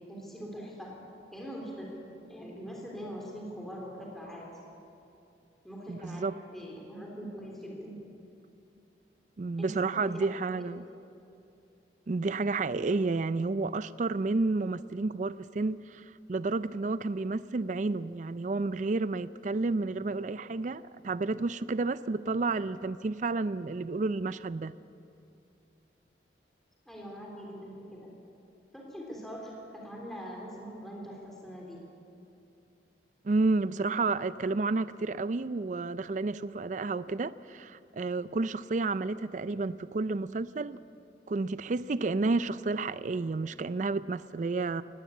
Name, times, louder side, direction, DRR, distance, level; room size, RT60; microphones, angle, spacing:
voice 1, 0.1-1.0 1.3-4.5 5.6-8.0 9.6-10.8 26.9-28.1 28.7-31.8, equal, ahead, 3.4 m, -43 dB
voice 2, 5.9-6.3 9.4-10.8 12.1-24.7 33.2-40.8 41.3-44.8, right 3 dB, 45° right, 0.4 m, -31 dB
19.0 x 17.0 x 8.4 m
head